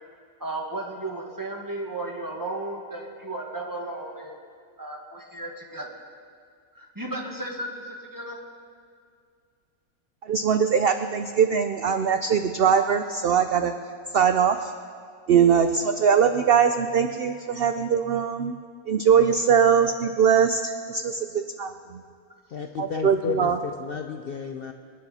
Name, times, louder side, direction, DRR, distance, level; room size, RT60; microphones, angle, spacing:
voice 1, 0.4-4.4 4.8-6.0 6.7-8.4, right 2 dB, 15° right, -1 dB, 1.7 m, -34 dB
voice 2, 10.2-13.7 14.1-14.7 15.3-18.5 18.9-22.0 22.8-23.6, right 7 dB, 60° right, 8 dB, 0.6 m, -21 dB
voice 3, 22.5-24.7, left 6 dB, 55° left, 5 dB, 0.7 m, -32 dB
27.0 x 9.5 x 4.2 m, 2.2 s
omnidirectional pair, 1.6 m